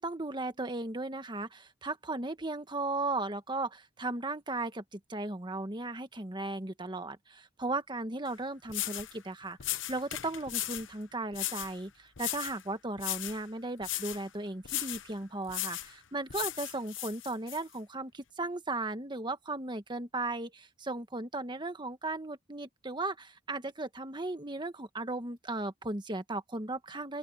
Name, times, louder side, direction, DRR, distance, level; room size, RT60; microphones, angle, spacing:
voice 1, 0.0-27.2, right 2 dB, 25° right, 1.4 m, -36 dB
sound 1, 8.3-8.4 8.7-9.1 9.6-10.9 11.3-11.7 12.2-12.6 13.0-13.4 13.8-14.2 14.6-15.1 15.5-15.9 16.3-17.6, left 14 dB, 75° left, 1.0 m, -36 dB
open air
head